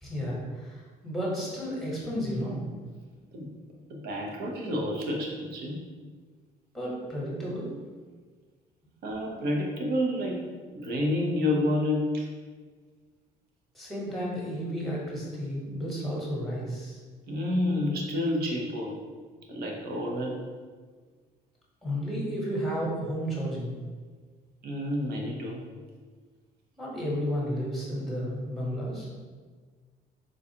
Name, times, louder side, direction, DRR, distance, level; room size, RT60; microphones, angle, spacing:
voice 1, 0.0-2.7 6.7-7.7 13.7-17.0 21.8-23.7 26.8-29.1, equal, ahead, -5 dB, 1.1 m, -32 dB
voice 2, 3.9-5.8 9.0-10.4 10.7-12.3 17.3-19.0 19.5-20.4 24.6-25.6, left 1 dB, 70° right, -1 dB, 0.7 m, -29 dB
3.8 x 2.4 x 2.8 m, 1.5 s
cardioid pair, 110°, 17 cm